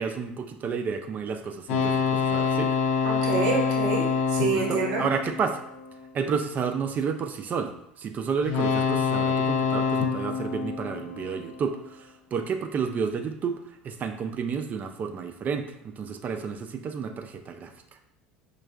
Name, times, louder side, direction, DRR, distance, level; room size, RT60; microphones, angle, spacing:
voice 1, 0.0-2.7 4.5-5.6 6.1-17.7, right 6 dB, 35° right, 5 dB, 0.3 m, -31 dB
sound 1, 1.7-6.1 8.4-11.7, left 6 dB, 60° left, 0.6 m, -26 dB
voice 2, 3.0-5.0, right 4 dB, 70° right, -1 dB, 0.7 m, -27 dB
5.0 x 2.3 x 2.3 m, 0.75 s
hypercardioid pair, 70°, 5 cm